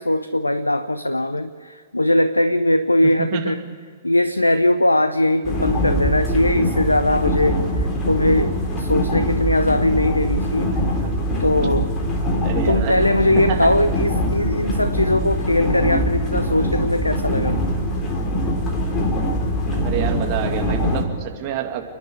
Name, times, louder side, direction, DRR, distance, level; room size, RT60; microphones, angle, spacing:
voice 1, 0.0-3.6 4.0-10.7 11.4-11.9 12.6-17.6, left 1 dB, 85° left, 12 dB, 0.6 m, -20 dB
voice 2, 3.0-3.5 10.7-10.8 12.4-13.0 13.3-13.7 19.8-21.8, right 9 dB, 40° right, 4 dB, 2.4 m, -27 dB
sound 1, 5.4-21.0, equal, 20° left, 3.8 m, -23 dB
29.5 x 10.5 x 9.8 m, 2.1 s
figure-of-eight pair, 110°, 0 cm